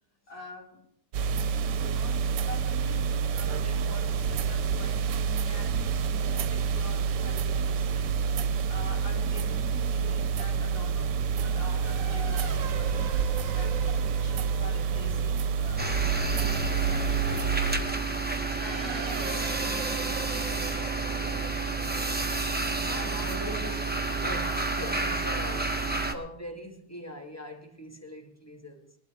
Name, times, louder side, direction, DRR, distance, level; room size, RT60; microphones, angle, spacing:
voice 1, 0.3-0.8 1.3-5.9 6.3-8.2 8.7-13.8 14.1-16.0 16.3-18.0 18.6-21.5, left 2 dB, 60° left, -4 dB, 4.7 m, -45 dB
sound 1, 1.1-17.8, right 6 dB, 80° right, 1.3 m, -28 dB
Race car auto racing / Accelerating revving vroom, 9.6-23.7, right 7 dB, 55° right, 1.3 m, -43 dB
sound 2, 15.8-26.1, right 3 dB, 10° right, 0.6 m, -30 dB
voice 2, 22.9-29.0, equal, 10° left, 3 dB, 1.3 m, -42 dB
20.5 x 12.0 x 3.5 m, 0.69 s
omnidirectional pair, 1.9 m